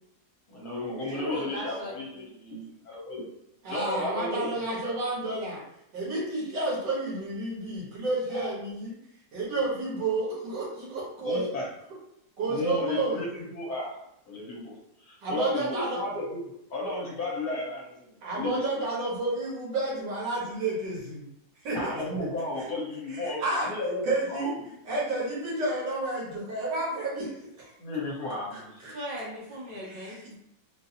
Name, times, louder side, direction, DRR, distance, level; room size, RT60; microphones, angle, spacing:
voice 1, 0.5-3.2 3.7-4.6 8.3-8.5 11.2-11.7 12.5-13.9 14.3-16.4 16.7-18.9 21.7-24.7 27.8-29.0, left 2 dB, 60° left, -4 dB, 1.2 m, -34 dB
voice 2, 1.1-2.1 28.9-30.3, equal, 85° right, -4 dB, 1.8 m, -37 dB
voice 3, 3.6-5.6 5.9-8.9 9.3-11.4 12.4-13.2 15.2-16.0 18.2-21.2 21.6-22.3 23.1-23.7 24.0-24.6 24.8-27.3 27.6-27.7 28.5-29.0 29.9-30.2, right 2 dB, 70° right, -5 dB, 1.8 m, -30 dB
3.8 x 2.6 x 2.7 m, 0.81 s
omnidirectional pair, 2.0 m